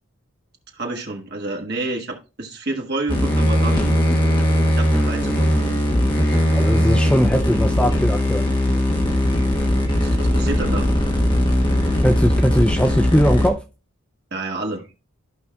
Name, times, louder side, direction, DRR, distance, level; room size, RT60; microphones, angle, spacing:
voice 1, 0.7-4.0 4.7-5.8 9.9-10.9 14.3-14.9, right 2 dB, 50° right, 1.6 m, -29 dB
sound 1, 3.1-13.5, left 1 dB, 20° left, 1.3 m, -19 dB
voice 2, 6.5-8.5 12.0-13.6, equal, 5° left, 0.4 m, -19 dB
14.0 x 5.3 x 2.3 m
head